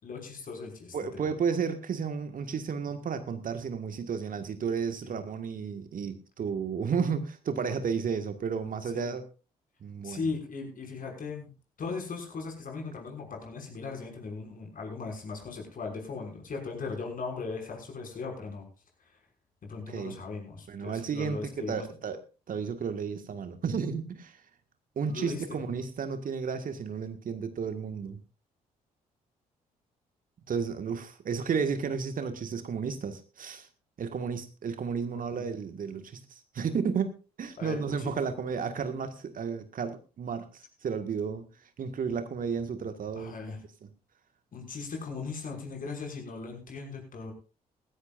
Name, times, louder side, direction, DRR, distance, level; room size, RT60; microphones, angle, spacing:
voice 1, 0.0-1.3 5.0-5.1 8.9-9.2 10.0-11.5 11.8-18.7 19.6-21.9 25.1-25.6 35.4-35.5 37.6-38.1 43.2-43.6 44.5-47.3, left 4 dB, 45° left, 1 dB, 6.1 m, -38 dB
voice 2, 0.9-9.2 9.8-10.3 19.9-20.2 20.7-22.2 22.5-24.4 25.0-28.2 30.5-33.7 34.0-41.5 41.8-43.3 43.8-43.9, right 6 dB, 45° right, 8 dB, 1.8 m, -32 dB
18.5 x 16.0 x 2.6 m, 0.34 s
figure-of-eight pair, 45°, 19 cm